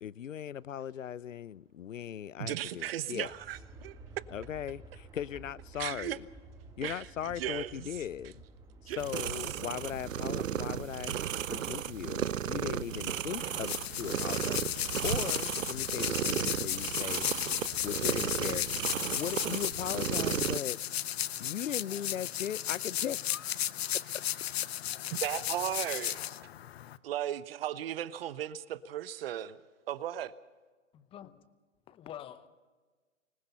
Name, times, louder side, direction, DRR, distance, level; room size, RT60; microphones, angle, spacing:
voice 1, 0.0-3.3 4.3-6.3 6.8-8.4 8.8-11.2 11.5-17.3 17.8-18.7 19.2-20.8 21.4-23.6, left 9 dB, 80° left, 0.6 m, -38 dB
voice 2, 2.4-4.0 5.8-6.2 6.8-7.9 8.9-9.0 25.1-26.2 27.0-29.6 29.9-30.3, right 11 dB, 50° right, 1.1 m, -36 dB
Aircraft, 3.2-19.4, right 3 dB, 10° right, 1.5 m, -54 dB
sound 1, 9.0-20.6, right 9 dB, 85° right, 0.6 m, -34 dB
sound 2, 13.4-27.0, left 12 dB, 55° left, 0.9 m, -35 dB
voice 3, 30.9-31.5 31.9-32.5, left 11 dB, 15° left, 0.8 m, -47 dB
25.5 x 20.5 x 5.6 m
hypercardioid pair, 125°, 38 cm